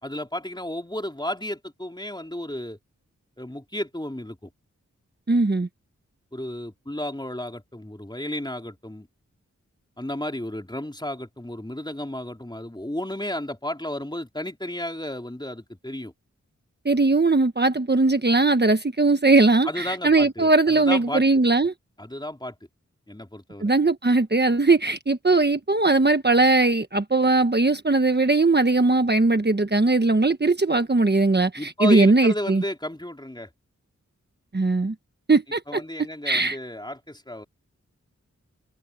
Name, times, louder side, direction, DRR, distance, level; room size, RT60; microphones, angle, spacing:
voice 1, 0.0-2.8 3.4-4.5 6.3-9.1 10.0-16.1 19.6-21.4 22.0-22.6 23.1-23.7 31.6-33.5 35.7-37.4, left 1 dB, 15° left, 3.6 m, -33 dB
voice 2, 5.3-5.7 16.8-21.7 23.6-32.6 34.5-34.9 35.3-35.8 36.2-36.6, right 3 dB, 35° right, 1.3 m, -20 dB
cardioid pair, 40°, 30 cm